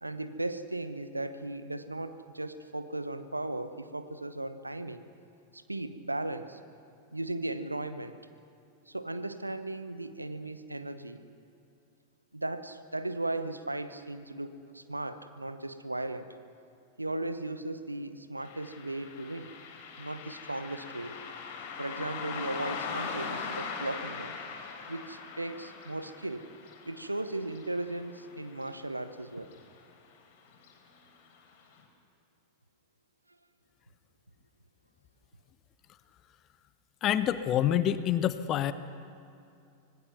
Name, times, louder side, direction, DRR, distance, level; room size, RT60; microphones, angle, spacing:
voice 1, 0.0-5.0 5.5-6.6 7.1-8.1 8.9-11.3 12.3-16.3 17.0-19.5 20.0-21.2 21.8-24.4 24.9-26.5 26.8-29.5, right 2 dB, 85° right, 11 dB, 1.0 m, -36 dB
Car passing by, 18.4-29.2 29.5-29.6 30.5-30.7 31.2-31.3 31.8-31.9, left 5 dB, 50° left, 3.8 m, -41 dB
voice 2, 37.0-38.7, left 11 dB, 35° left, 13 dB, 1.0 m, -27 dB
25.5 x 19.5 x 6.0 m, 2.6 s
figure-of-eight pair, 90°, 0 cm